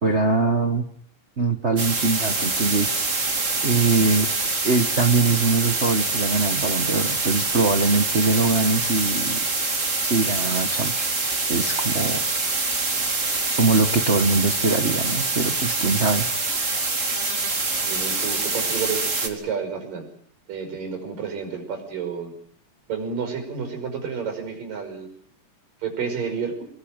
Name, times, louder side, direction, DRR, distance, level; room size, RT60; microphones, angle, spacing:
voice 1, 0.0-0.8 1.4-2.9 3.6-4.3 4.6-9.4 10.0-12.2 13.6-16.3, right 3 dB, 60° right, 5 dB, 0.7 m, -22 dB
sound 1, 1.8-19.3, right 3 dB, 25° right, 2.5 m, -25 dB
voice 2, 17.8-20.1 20.5-22.3 22.9-25.1 25.8-26.7, right 6 dB, 80° right, 5 dB, 7.2 m, -30 dB
25.5 x 19.5 x 9.0 m, 0.63 s
omnidirectional pair, 3.8 m